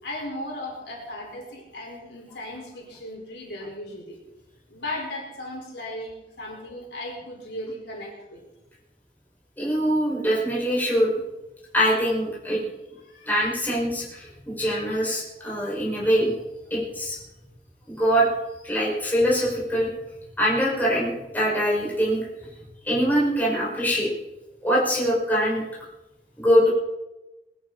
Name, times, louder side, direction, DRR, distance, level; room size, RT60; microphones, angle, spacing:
voice 1, 0.0-4.2 4.7-8.4 13.0-13.5 15.4-15.5, left 1 dB, 70° left, -2 dB, 4.9 m, -36 dB
voice 2, 9.6-11.1 11.7-12.6 13.2-16.3 16.7-17.2 17.9-18.3 18.6-19.9 20.4-22.3 22.8-24.1 24.6-25.6 26.4-26.7, equal, 10° left, -6 dB, 5.7 m, -23 dB
20.5 x 13.5 x 4.3 m, 1.0 s
head